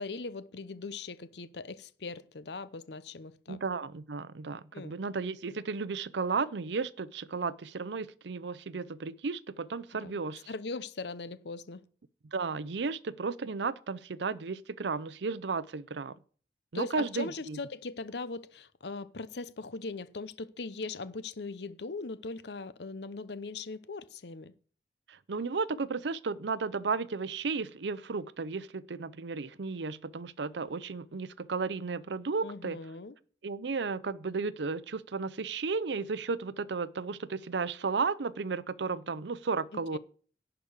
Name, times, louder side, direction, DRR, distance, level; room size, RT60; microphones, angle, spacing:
voice 1, 0.0-3.6 4.7-5.0 10.0-10.2 10.5-11.8 16.7-24.5 32.4-33.1 39.9-40.0, left 3 dB, 65° left, 0.7 m, -40 dB
voice 2, 3.5-10.5 12.3-16.2 16.7-17.6 25.1-32.8 33.4-40.0, right 4 dB, 75° right, 0.6 m, -34 dB
11.0 x 5.1 x 8.1 m
head